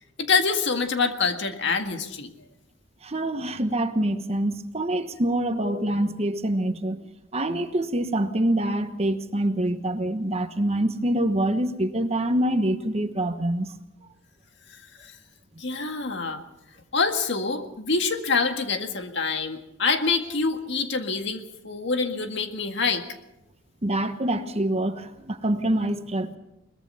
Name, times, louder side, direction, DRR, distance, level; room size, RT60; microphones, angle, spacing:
voice 1, 0.2-2.3 5.6-5.9 15.0-15.1 15.6-16.4 16.9-23.0, left 4 dB, 60° left, 1.9 m, -26 dB
voice 2, 3.0-7.0 7.3-13.7 23.8-26.4, right 1 dB, 30° right, 1.1 m, -25 dB
22.0 x 20.5 x 5.6 m
head